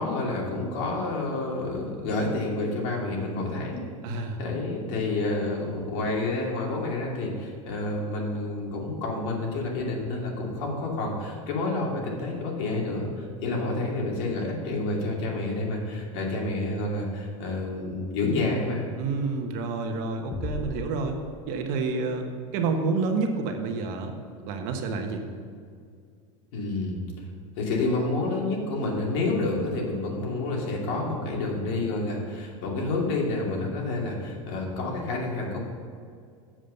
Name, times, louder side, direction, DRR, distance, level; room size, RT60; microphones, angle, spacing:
voice 1, 0.0-3.8 4.4-18.9 26.5-27.0 27.6-35.6, left 2 dB, 60° left, -2 dB, 2.7 m, -29 dB
voice 2, 4.0-4.4 19.0-21.2 21.5-24.1 24.5-25.2, right 4 dB, 55° right, 5 dB, 1.2 m, -29 dB
sound 1, 20.3-22.0, left 2 dB, 15° left, 0.9 m, -37 dB
7.6 x 7.3 x 6.7 m, 2.2 s
supercardioid pair, 135°, 17 cm